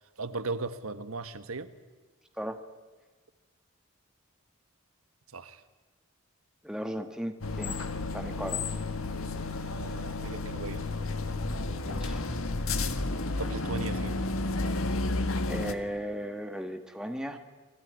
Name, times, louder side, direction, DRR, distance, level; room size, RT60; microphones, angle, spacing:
voice 1, 0.2-1.7 5.3-5.6 9.3-10.8 13.4-14.2, right 3 dB, 90° right, 12 dB, 1.5 m, -37 dB
voice 2, 6.6-7.8 8.1-8.6 11.7-12.2 15.5-17.4, equal, 5° right, 6 dB, 1.6 m, -36 dB
sound 1, 7.4-15.7, left 2 dB, 80° left, 1.7 m, -32 dB
28.5 x 20.0 x 9.7 m, 1.3 s
head